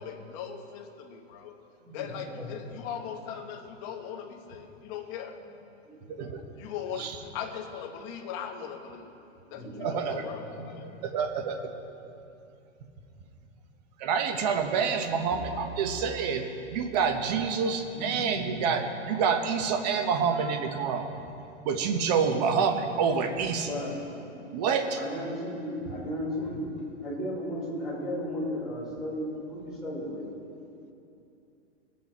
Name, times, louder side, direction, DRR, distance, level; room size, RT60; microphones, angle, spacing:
voice 1, 0.0-1.5 1.9-5.4 6.4-9.2 9.5-11.0, left 8 dB, 25° left, 2 dB, 0.9 m, -39 dB
voice 2, 1.9-2.4 5.9-6.3 9.5-10.3 15.8-15.9 17.9-18.7 23.6-24.0 24.3-24.5 25.0-30.3, left 1 dB, ahead, -8 dB, 3.7 m, -35 dB
voice 3, 6.1-6.4 7.0-7.1 9.8-10.2 11.0-11.7 14.0-16.5 16.7-21.1 21.6-23.7 24.5-25.0, right 6 dB, 35° right, 6 dB, 1.0 m, -27 dB
sound 1, 15.3-17.9, right 2 dB, 90° right, 2.4 m, -44 dB
20.0 x 8.6 x 4.4 m, 2.8 s
hypercardioid pair, 165°, 37 cm